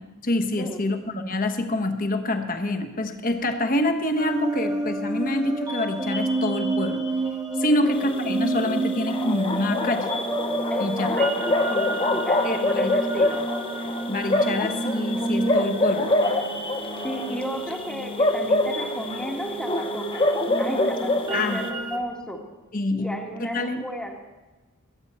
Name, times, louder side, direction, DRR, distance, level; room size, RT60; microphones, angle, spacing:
voice 1, 0.2-7.0 7.6-10.1 10.8-11.1 12.4-12.9 14.1-16.1 21.3-21.6 22.7-23.8, left 2 dB, 40° left, 6 dB, 1.1 m, -26 dB
sound 1, 4.2-22.0, right 2 dB, 15° right, 1.2 m, -30 dB
sound 2, 7.9-21.7, left 2 dB, 25° left, 0.8 m, -26 dB
voice 2, 10.7-13.4 14.4-14.6 17.0-20.3 20.6-22.4 23.0-24.1, equal, 5° left, 1 dB, 1.3 m, -33 dB
21.5 x 8.8 x 4.3 m, 1.2 s
head